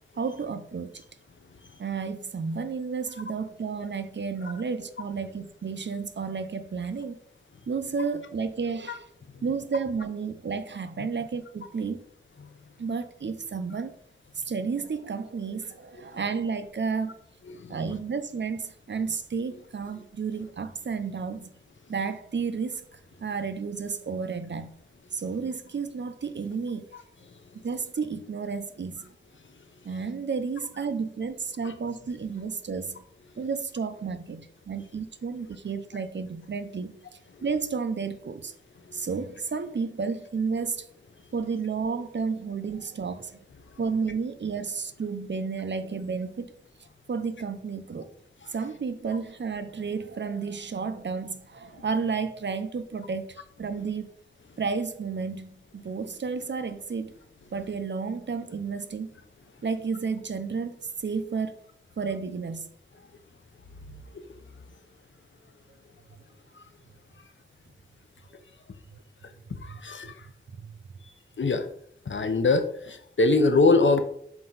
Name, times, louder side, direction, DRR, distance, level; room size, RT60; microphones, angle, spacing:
voice 1, 0.2-1.0 1.8-7.2 7.7-9.0 9.4-12.0 12.8-13.9 14.4-17.1 17.7-21.5 21.9-22.8 23.2-24.7 25.1-26.9 27.6-29.1 29.8-33.0 33.4-36.9 37.4-38.5 38.9-40.9 41.3-43.4 43.8-46.5 47.1-48.1 48.5-54.1 54.6-57.1 57.5-59.1 59.6-61.6 62.0-62.7 68.9-69.0 69.6-70.1 70.6-70.8, right 5 dB, 60° right, 0.6 m, -32 dB
voice 2, 17.5-17.8 26.9-27.0 31.6-31.7 51.7-51.8 63.9-64.2 66.6-66.7 69.5-70.3 71.4-71.7 72.1-74.0, left 3 dB, 70° left, 0.8 m, -24 dB
5.9 x 4.3 x 3.9 m
wide cardioid pair, 70°, 20 cm